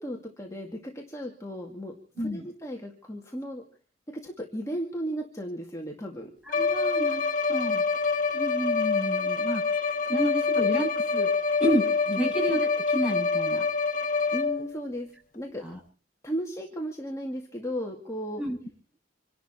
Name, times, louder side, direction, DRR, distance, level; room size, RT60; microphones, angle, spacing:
voice 1, 0.0-1.9 2.2-3.6 4.2-6.3 12.2-12.3 14.3-15.6 16.2-18.4, equal, 15° left, 0 dB, 2.1 m, -35 dB
Bowed string instrument, 6.5-14.8, left 4 dB, 45° left, 1.5 m, -26 dB
voice 2, 6.5-7.8 8.3-11.3 11.6-13.6 15.6-15.8 18.4-18.6, equal, 5° right, -1 dB, 7.7 m, -30 dB
27.0 x 12.0 x 4.3 m, 0.41 s
head